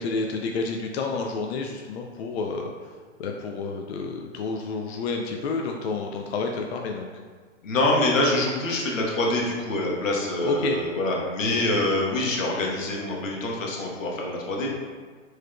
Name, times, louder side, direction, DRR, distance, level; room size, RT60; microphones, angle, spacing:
voice 1, 0.0-7.1 10.4-10.8, left 4 dB, 60° left, 2 dB, 0.4 m, -30 dB
voice 2, 7.6-14.7, left 1 dB, 90° left, -2 dB, 1.1 m, -25 dB
4.7 x 3.1 x 2.2 m, 1.5 s
hypercardioid pair, 140°, 38 cm